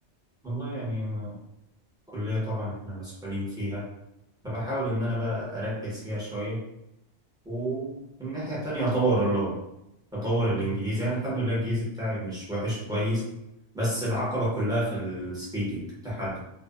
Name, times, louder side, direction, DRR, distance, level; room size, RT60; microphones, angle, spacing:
voice 1, 0.4-1.4 2.1-3.9 4.4-6.6 7.4-9.6 10.1-13.3 13.7-16.4, right 1 dB, 5° right, -9 dB, 0.9 m, -29 dB
2.4 x 2.3 x 2.4 m, 0.86 s
omnidirectional pair, 1.2 m